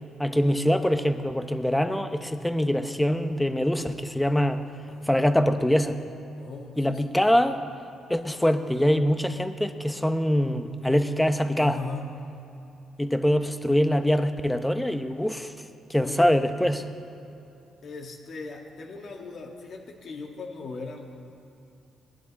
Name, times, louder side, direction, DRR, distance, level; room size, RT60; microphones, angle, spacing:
voice 1, 0.2-4.6 5.1-6.0 6.8-7.6 8.1-11.8 13.0-15.5 15.9-16.8, equal, 5° left, 9 dB, 0.8 m, -24 dB
voice 2, 6.4-7.2 11.6-12.2 16.0-16.4 17.8-21.1, left 4 dB, 55° left, 2 dB, 1.7 m, -39 dB
19.0 x 11.0 x 4.2 m, 2.9 s
cardioid pair, 90°, 0 cm